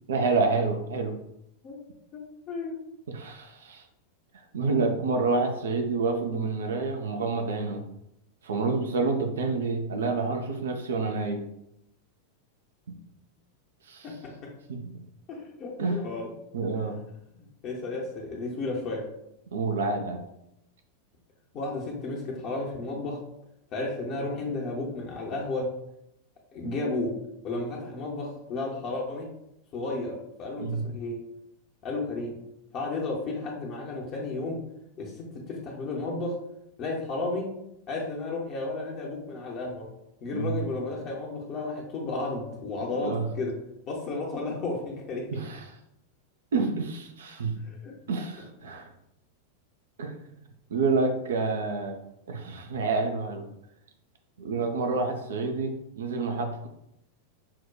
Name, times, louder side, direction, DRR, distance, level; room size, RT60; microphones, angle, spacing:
voice 1, 0.1-1.2 3.1-3.8 4.5-7.8 8.4-11.4 13.9-14.2 14.7-15.0 15.8-16.0 16.5-17.0 19.5-20.2 30.6-30.8 40.3-40.6 43.0-43.3 45.3-45.8 46.5-47.5 48.1-48.9 50.0-50.1 50.7-52.0 52.3-53.4 54.4-56.7, right 3 dB, 65° right, 5 dB, 0.4 m, -28 dB
voice 2, 2.1-2.8 14.0-14.5 15.3-16.3 17.3-19.1 21.5-23.2 23.7-25.8 26.5-27.2 27.4-29.3 29.7-31.2 31.8-32.4 32.7-34.6 35.0-36.4 36.8-37.6 37.9-39.9 40.2-43.6 43.9-45.4 47.6-48.0, left 2 dB, 35° left, -2 dB, 0.6 m, -33 dB
5.7 x 2.1 x 2.3 m, 0.81 s
figure-of-eight pair, 90°, 0 cm